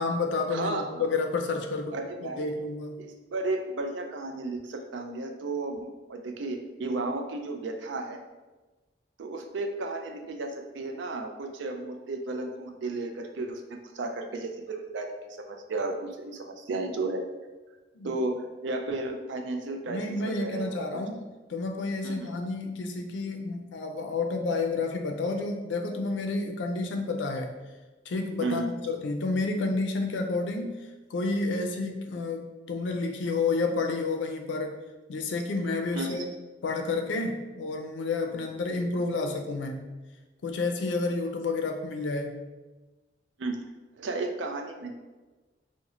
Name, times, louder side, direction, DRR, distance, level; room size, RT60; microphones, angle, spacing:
voice 1, 0.0-2.0 2.2-3.0 17.9-18.1 19.9-21.2 21.5-27.6 28.1-30.8 31.1-34.7 35.1-36.2 36.6-39.9 40.4-42.4, left 3 dB, 85° left, 4 dB, 0.4 m, -30 dB
voice 2, 0.5-1.1 1.9-2.5 3.1-8.2 9.2-15.1 15.5-17.2 18.0-20.8 22.0-22.3 28.4-28.7 35.9-36.3 43.4-43.6 44.0-44.9, right 2 dB, 90° right, 4 dB, 0.4 m, -33 dB
3.0 x 2.1 x 3.7 m, 1.2 s
head